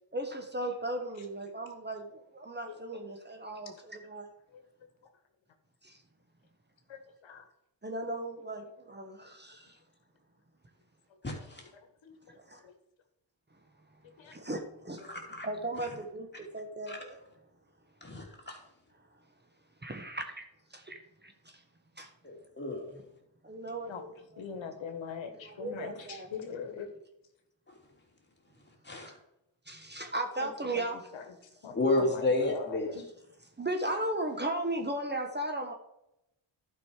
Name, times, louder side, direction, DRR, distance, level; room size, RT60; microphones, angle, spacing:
voice 1, 0.1-4.3 5.8-6.0 7.8-9.8 12.3-12.6 14.2-17.2 19.8-20.4 20.7-21.6 22.0-22.1 23.4-24.4 25.4-26.3 29.7-31.0 33.6-35.7, right 1 dB, 20° right, 5 dB, 1.3 m, -37 dB
voice 2, 6.9-7.5 11.7-12.4 12.6-12.7 14.2-14.3 15.0-15.2 23.9-24.0 24.4-26.9 30.4-30.5 30.7-30.8 31.1-31.3 31.6-33.0, left 6 dB, 80° left, 6 dB, 1.3 m, -42 dB
voice 3, 11.2-11.6 15.1-15.5 16.9-17.0 18.0-18.6 22.2-23.0 28.8-29.1 31.7-32.9, left 2 dB, 20° left, 0 dB, 2.9 m, -31 dB
11.5 x 5.4 x 4.8 m, 0.85 s
cardioid pair, 75°, 46 cm